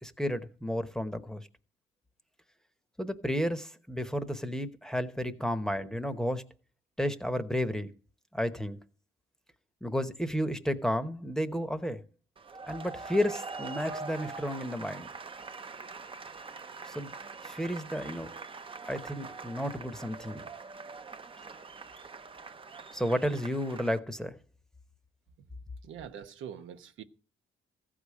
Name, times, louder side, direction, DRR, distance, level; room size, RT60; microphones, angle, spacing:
voice 1, 0.0-1.5 3.0-6.4 7.0-7.9 8.3-8.8 9.8-12.0 12.7-15.1 16.9-17.1 17.4-18.3 18.8-20.4 22.9-24.3, equal, 5° left, 1.0 m, -32 dB
sound 1, 12.4-24.0, right 4 dB, 25° right, 0.7 m, -44 dB
voice 2, 25.9-27.0, right 8 dB, 80° right, 1.0 m, -43 dB
14.5 x 5.0 x 8.5 m
cardioid pair, 90°, 20 cm